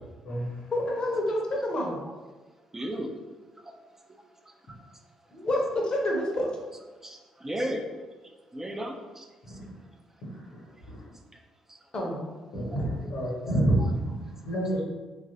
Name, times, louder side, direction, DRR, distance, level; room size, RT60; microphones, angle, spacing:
voice 1, 0.7-2.0 5.3-6.5 11.9-12.3, left 1 dB, 40° left, 0 dB, 0.7 m, -28 dB
voice 2, 2.7-3.1 3.6-3.7 4.5-4.6 7.0-7.8 8.5-9.6 11.7-11.8 13.8-13.9, equal, 20° right, 2 dB, 0.4 m, -35 dB
voice 3, 12.5-14.2 14.4-14.8, right 1 dB, 65° left, -4 dB, 0.9 m, -27 dB
2.9 x 2.4 x 2.6 m, 1.3 s
figure-of-eight pair, 45°, 2 cm